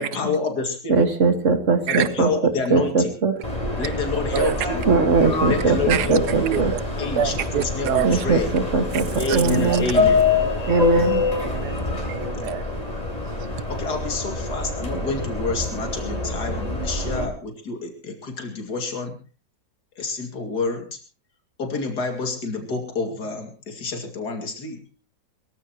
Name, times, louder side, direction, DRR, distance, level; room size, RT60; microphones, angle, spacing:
voice 1, 0.0-1.0 1.9-3.1 3.8-4.9 5.5-6.6 7.0-8.5 9.2-10.2 13.7-19.2 20.0-21.0 21.6-24.8, left 3 dB, 80° left, 3.0 m, -28 dB
voice 2, 0.9-2.3 2.7-3.4 4.9-6.7 8.0-9.9 10.7-11.2, right 4 dB, 50° right, 2.1 m, -20 dB
Subway metro underground, 3.4-17.2, left 3 dB, 25° left, 3.4 m, -26 dB
voice 3, 5.9-6.8 7.2-8.1 9.3-9.4 9.7-9.8 11.4-12.7, right 10 dB, 80° right, 1.5 m, -26 dB
23.0 x 15.0 x 3.0 m
omnidirectional pair, 1.7 m